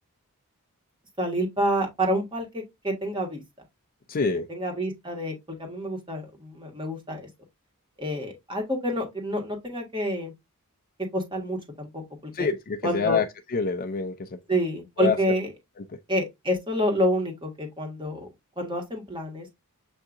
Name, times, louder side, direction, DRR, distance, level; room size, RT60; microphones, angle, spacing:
voice 1, 1.2-3.4 4.5-7.3 8.0-10.3 11.1-12.5 12.8-13.2 14.5-15.5 16.1-18.3 18.6-19.5, equal, 20° right, 1.4 m, -28 dB
voice 2, 4.1-4.5 12.3-14.4 15.0-15.2, left 4 dB, 40° left, 0.4 m, -26 dB
7.0 x 2.8 x 2.5 m
head